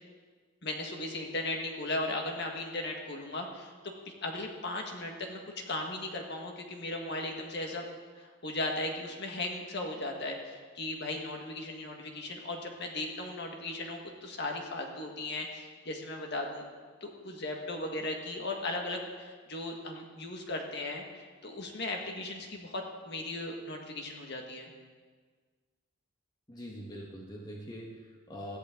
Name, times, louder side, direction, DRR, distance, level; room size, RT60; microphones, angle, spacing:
voice 1, 0.6-3.7 4.2-5.4 5.7-7.8 8.2-16.7 17.0-24.7, left 2 dB, 50° left, 1 dB, 1.8 m, -37 dB
voice 2, 26.5-28.6, equal, 20° left, -2 dB, 1.5 m, -43 dB
17.5 x 15.0 x 3.9 m, 1.5 s
head